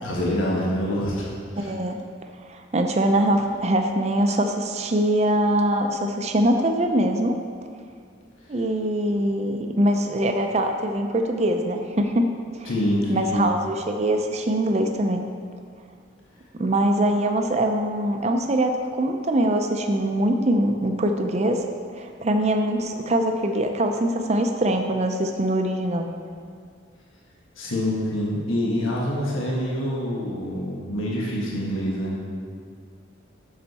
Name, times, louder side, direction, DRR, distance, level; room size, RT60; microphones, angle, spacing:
voice 1, 0.0-1.3 1.5-1.7 12.6-13.3 27.6-32.2, equal, 90° left, -4 dB, 1.4 m, -26 dB
voice 2, 1.6-2.0 2.5-7.3 8.5-12.3 12.5-12.7 13.1-15.3 16.5-21.7 22.0-26.1, right 1 dB, 35° right, 4 dB, 0.5 m, -23 dB
8.8 x 6.5 x 4.1 m, 2.1 s
head